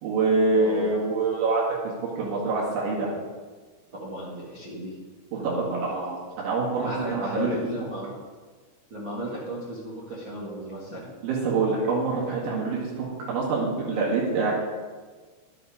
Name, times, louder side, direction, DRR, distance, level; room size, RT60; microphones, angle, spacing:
voice 1, 0.0-3.1 5.5-7.5 11.2-14.5, right 3 dB, 90° right, -6 dB, 4.6 m, -26 dB
voice 2, 0.5-1.0 4.0-4.9 5.4-5.9 6.8-8.1 8.9-11.1, right 1 dB, 45° right, -6 dB, 1.5 m, -34 dB
11.5 x 9.3 x 5.0 m, 1.4 s
omnidirectional pair, 5.1 m